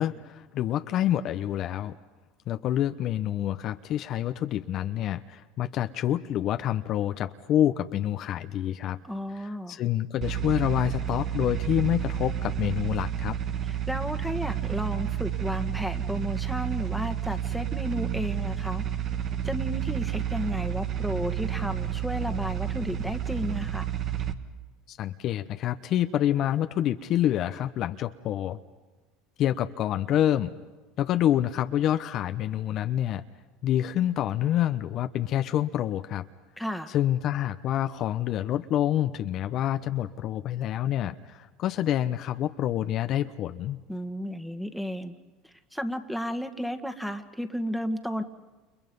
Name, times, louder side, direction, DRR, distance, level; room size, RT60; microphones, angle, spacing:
voice 1, 0.0-2.0 2.5-9.0 9.3-13.4 24.9-28.6 29.4-30.5 31.0-33.2 33.6-36.2 36.9-43.8, left 11 dB, 55° left, 9 dB, 0.9 m, -27 dB
voice 2, 9.0-9.8 13.6-18.8 19.4-23.9 36.6-36.9 43.9-45.2 45.4-48.2, equal, ahead, 8 dB, 1.8 m, -33 dB
sound 1, 10.2-24.3, right 9 dB, 45° right, 1.6 m, -30 dB
30.0 x 29.5 x 5.5 m, 1.2 s
hypercardioid pair, 85°, 0 cm